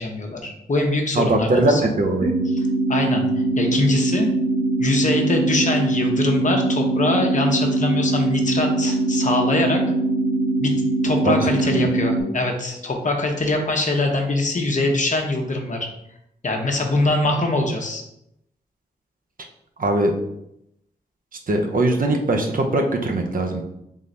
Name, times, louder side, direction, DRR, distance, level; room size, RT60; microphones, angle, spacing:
voice 1, 0.0-1.8 2.9-3.2 3.6-4.3 4.8-9.8 10.6-10.7 11.0-15.9 16.4-18.0, left 2 dB, 45° left, 2 dB, 1.1 m, -23 dB
voice 2, 1.1-2.3 11.2-11.9 19.8-20.1 21.5-23.6, right 2 dB, 55° right, 2 dB, 0.8 m, -21 dB
sound 1, 2.2-12.2, right 2 dB, 70° right, 1.4 m, -22 dB
3.8 x 3.1 x 3.9 m, 0.80 s
supercardioid pair, 45°, 17 cm